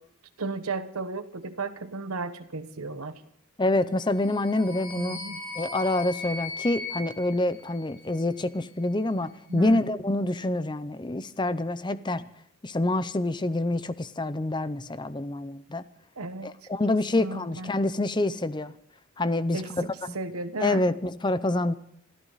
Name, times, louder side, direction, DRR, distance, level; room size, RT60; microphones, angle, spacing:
voice 1, 0.4-3.2 5.0-5.4 9.5-9.8 16.2-16.5 16.9-17.7 19.5-20.9, right 3 dB, 85° right, 9 dB, 1.2 m, -34 dB
voice 2, 3.6-5.3 5.6-12.3 12.6-15.8 16.4-18.7 19.2-20.2 20.6-21.7, left 2 dB, 20° left, 14 dB, 0.6 m, -27 dB
sound 1, 4.0-8.3, left 3 dB, 70° left, 3.9 m, -39 dB
25.5 x 14.0 x 4.1 m, 0.71 s
head